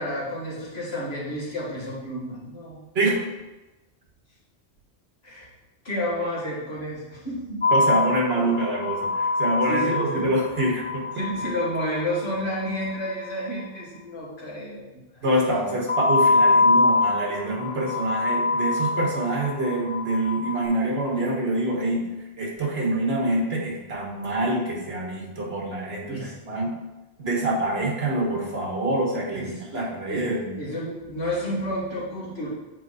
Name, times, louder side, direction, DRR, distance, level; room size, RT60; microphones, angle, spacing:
voice 1, 0.0-2.8 5.2-5.5 5.8-7.6 9.7-10.3 11.1-15.2 26.1-26.6 29.3-29.6 30.1-30.3 30.6-32.5, equal, 65° left, -6 dB, 2.2 m, -31 dB
sound 1, 7.6-12.9 15.9-20.6, left 3 dB, 30° left, 1.4 m, -24 dB
voice 2, 7.7-11.2 15.2-22.1 22.4-26.8 27.2-30.5, right 1 dB, 65° right, -1 dB, 1.6 m, -26 dB
7.8 x 4.4 x 4.1 m, 1.1 s
omnidirectional pair, 1.1 m